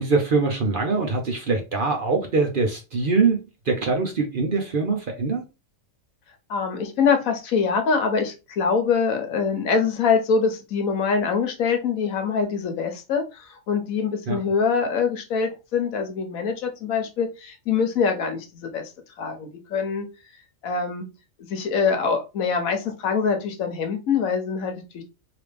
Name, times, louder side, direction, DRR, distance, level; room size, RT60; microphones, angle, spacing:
voice 1, 0.0-5.4 14.3-14.4, right 4 dB, 50° right, 0.7 m, -23 dB
voice 2, 6.5-18.9 19.2-20.1 20.6-21.1 21.4-25.0, left 5 dB, 80° left, 1.3 m, -24 dB
3.3 x 2.9 x 3.3 m
omnidirectional pair, 1.4 m